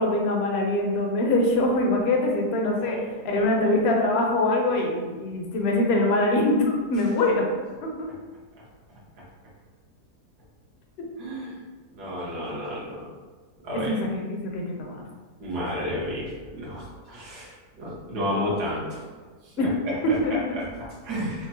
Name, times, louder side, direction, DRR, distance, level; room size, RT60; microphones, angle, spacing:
voice 1, 0.0-3.0 3.2-7.5 7.8-7.9 13.9-15.0 19.6-19.7 20.0-20.6, left 2 dB, 60° left, 0 dB, 0.7 m, -23 dB
voice 2, 2.8-3.3 11.2-11.5 11.9-13.0 13.6-14.0 15.4-17.5 17.8-19.0 19.6-21.5, equal, 80° right, -6 dB, 1.7 m, -32 dB
5.8 x 2.1 x 2.7 m, 1.4 s
omnidirectional pair, 1.7 m